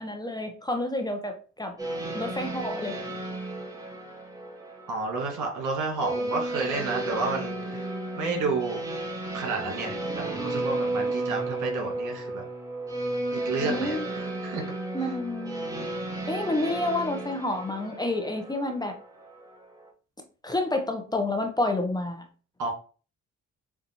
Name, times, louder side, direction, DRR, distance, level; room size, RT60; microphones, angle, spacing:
voice 1, 0.0-1.8 2.1-3.0 13.6-14.1 14.9-15.9 16.3-19.0 20.4-22.2, left 2 dB, 15° left, 5 dB, 0.8 m, -29 dB
sound 1, 1.8-19.9, right 2 dB, 10° right, 1.3 m, -34 dB
voice 2, 4.9-7.9 8.2-8.8 9.3-12.4 13.3-14.6 22.6-22.7, right 3 dB, 80° right, 0 dB, 1.8 m, -31 dB
6.8 x 2.5 x 2.9 m, 0.38 s
cardioid pair, 90°, 30 cm